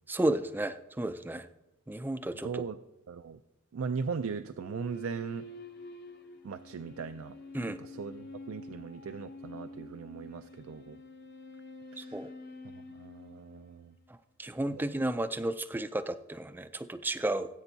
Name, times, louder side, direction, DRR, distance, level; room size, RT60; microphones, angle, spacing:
voice 1, 0.1-1.5 1.9-2.6 7.5-7.8 12.0-12.3 14.4-17.5, right 1 dB, 10° right, 12 dB, 0.4 m, -32 dB
voice 2, 2.4-2.8 3.1-3.4 3.7-5.5 6.4-11.0 11.9-12.2 13.0-13.9 14.7-14.9, right 5 dB, 80° right, 9 dB, 0.4 m, -39 dB
sound 1, 4.5-14.2, left 1 dB, 55° left, 0.9 m, -48 dB
17.5 x 8.8 x 2.7 m, 0.95 s
head